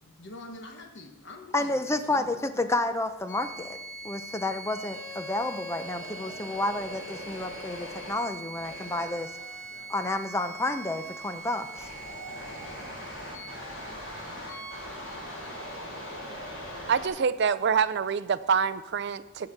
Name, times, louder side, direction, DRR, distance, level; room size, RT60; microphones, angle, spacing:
voice 1, 0.0-1.7 2.0-2.5 8.5-9.0 9.6-10.0 12.1-12.5 12.9-13.2 14.5-14.7 15.1-16.0, left 2 dB, 55° left, 3 dB, 1.1 m, -48 dB
voice 2, 1.5-3.8 4.0-9.4 9.9-11.9, left 2 dB, 15° left, 9 dB, 0.5 m, -30 dB
sound 1, 3.3-17.1, right 1 dB, 85° left, 4.2 m, -40 dB
voice 3, 16.9-19.5, right 6 dB, 55° right, 14 dB, 0.4 m, -26 dB
16.0 x 5.8 x 4.5 m, 1.0 s
head